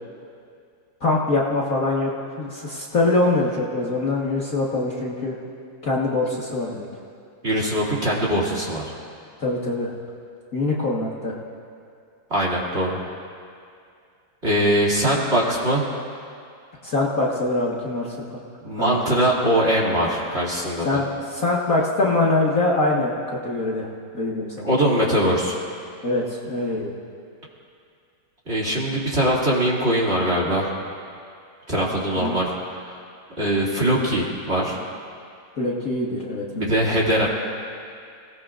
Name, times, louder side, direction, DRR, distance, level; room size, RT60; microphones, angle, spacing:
voice 1, 1.0-2.1 2.4-5.4 5.8-6.9 9.4-9.9 10.5-11.4 16.8-18.1 18.8-19.2 20.9-21.0 21.3-23.9 24.1-24.7 26.0-26.9 32.2-32.4 35.6-37.0, left 2 dB, 45° left, -5 dB, 1.8 m, -23 dB
voice 2, 7.4-8.9 12.3-13.0 14.4-15.9 18.6-21.0 24.6-25.6 28.5-30.7 31.7-33.0 33.4-34.8 36.6-37.3, right 1 dB, 30° right, -5 dB, 2.9 m, -22 dB
28.0 x 18.5 x 2.5 m, 2.4 s
omnidirectional pair, 2.3 m